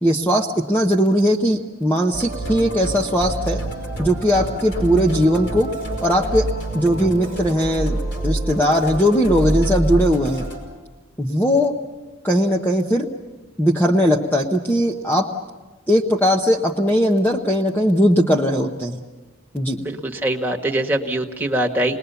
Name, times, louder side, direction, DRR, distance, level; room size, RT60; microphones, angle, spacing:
voice 1, 0.0-3.6 4.0-5.7 6.0-6.5 6.7-10.5 11.2-11.7 12.2-13.1 13.6-15.3 15.9-19.0 19.5-19.8, equal, 10° left, 0 dB, 0.9 m, -19 dB
Musical instrument, 2.1-10.6, right 1 dB, 60° left, 5.4 m, -27 dB
voice 2, 19.8-22.0, right 1 dB, 10° right, 0 dB, 1.7 m, -23 dB
28.0 x 20.5 x 7.0 m, 1.3 s
head